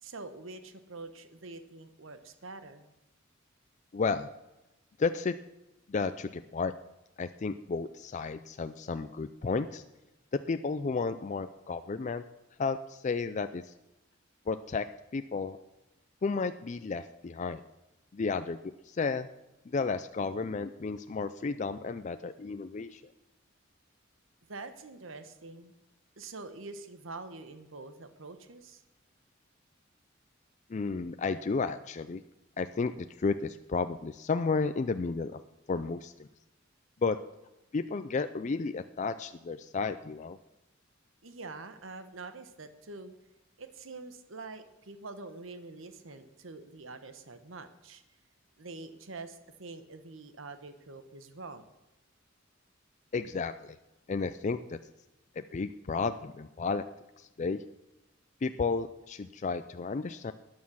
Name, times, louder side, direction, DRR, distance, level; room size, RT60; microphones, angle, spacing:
voice 1, 0.0-2.9 24.5-25.7 26.2-28.8 41.2-43.1 43.6-48.0 48.6-51.6, right 3 dB, 75° right, 10 dB, 1.2 m, -45 dB
voice 2, 3.9-4.3 5.0-5.4 5.9-6.7 7.2-9.8 10.5-12.2 12.6-13.7 14.5-14.9 15.1-15.6 16.2-17.6 18.1-18.6 18.9-19.3 19.7-23.0 30.7-32.2 32.6-35.4 35.7-36.3 37.0-37.2 37.7-40.4 53.1-53.8 54.1-54.8 55.4-56.8 57.2-57.6 58.4-60.3, left 4 dB, 35° left, 10 dB, 0.4 m, -32 dB
13.0 x 9.5 x 6.3 m, 0.98 s
head